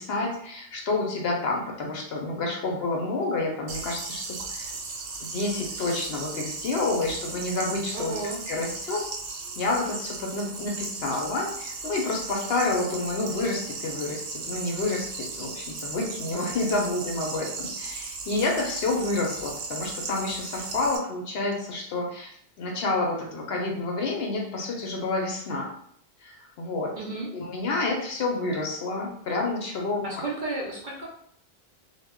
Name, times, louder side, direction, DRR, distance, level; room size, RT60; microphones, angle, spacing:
voice 1, 0.0-4.7 5.2-8.1 8.5-9.0 9.6-22.3 22.6-25.7 26.2-26.9 27.3-30.0, left 2 dB, 65° left, 0 dB, 0.7 m, -29 dB
sound 1, 3.7-21.0, right 4 dB, 80° right, 0.9 m, -36 dB
voice 2, 7.9-8.4 27.0-27.3 30.0-31.1, right 2 dB, 55° right, -4 dB, 0.5 m, -32 dB
2.1 x 2.1 x 3.5 m, 0.65 s
omnidirectional pair, 1.2 m